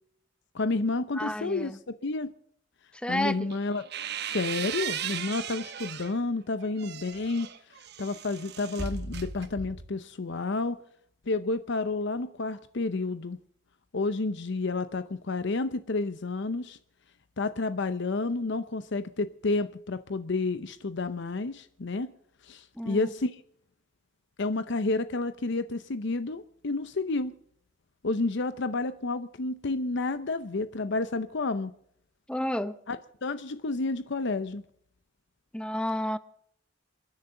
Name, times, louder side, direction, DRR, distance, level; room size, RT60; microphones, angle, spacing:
voice 1, 0.5-2.3 3.1-3.8 4.2-10.8 11.3-13.4 13.9-16.8 17.4-22.1 22.4-23.4 24.4-27.3 28.0-31.7 32.9-34.6, left 3 dB, 65° left, 0.7 m, -30 dB
voice 2, 1.1-1.8 2.9-3.6 22.7-23.1 32.3-32.8 35.5-36.2, left 1 dB, 5° left, 0.8 m, -31 dB
sound 1, 3.5-6.2 6.6-10.0, right 7 dB, 60° right, 1.0 m, -37 dB
28.5 x 10.5 x 3.8 m
head